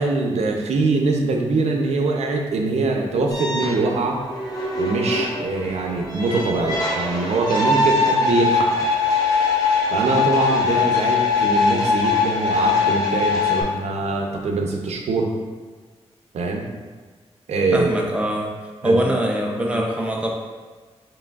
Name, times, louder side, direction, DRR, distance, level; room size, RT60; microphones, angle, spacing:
voice 1, 0.0-4.2 4.8-8.9 9.9-15.3 16.3-16.6 17.5-18.0 18.8-19.0 19.7-19.9, right 3 dB, 75° right, 1 dB, 0.6 m, -23 dB
sound 1, 3.3-13.6, left 4 dB, 30° left, 0.8 m, -22 dB
voice 2, 17.7-18.5 18.8-20.3, right 1 dB, 10° right, -1 dB, 0.5 m, -22 dB
4.8 x 3.2 x 2.4 m, 1.4 s
wide cardioid pair, 160°, 11 cm